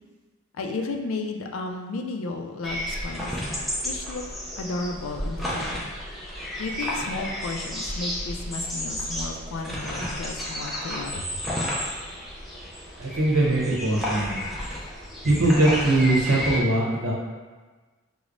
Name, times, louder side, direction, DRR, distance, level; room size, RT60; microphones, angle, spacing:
voice 1, 0.6-3.4 3.8-4.2 4.6-5.8 6.6-11.5, left 3 dB, 75° left, 3 dB, 0.4 m, -33 dB
sound 1, 2.6-16.6, equal, ahead, 0.4 m, -32 dB
voice 2, 13.0-14.4 15.2-17.1, right 2 dB, 85° right, -4 dB, 0.8 m, -21 dB
4.8 x 2.0 x 2.5 m, 1.3 s
head